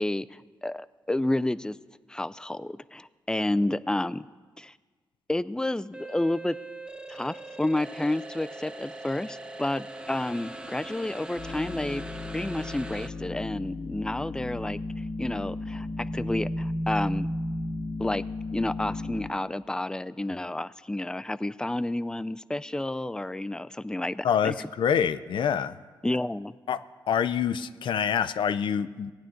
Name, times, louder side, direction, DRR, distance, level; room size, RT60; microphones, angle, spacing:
voice 1, 0.0-1.8 2.1-4.3 4.6-4.7 5.3-6.6 7.1-12.1 12.3-17.3 18.0-18.2 18.5-24.5 26.0-26.6, left 1 dB, 10° left, 17 dB, 0.4 m, -30 dB
sound 1, 5.9-13.1, right 2 dB, 10° right, 0.9 m, -41 dB
sound 2, 11.4-19.3, left 1 dB, 35° left, 1.1 m, -34 dB
voice 2, 24.2-25.8 26.7-26.8 27.1-29.1, left 8 dB, 75° left, 14 dB, 0.5 m, -26 dB
18.0 x 9.1 x 3.8 m, 1.4 s
cardioid pair, 65°, 8 cm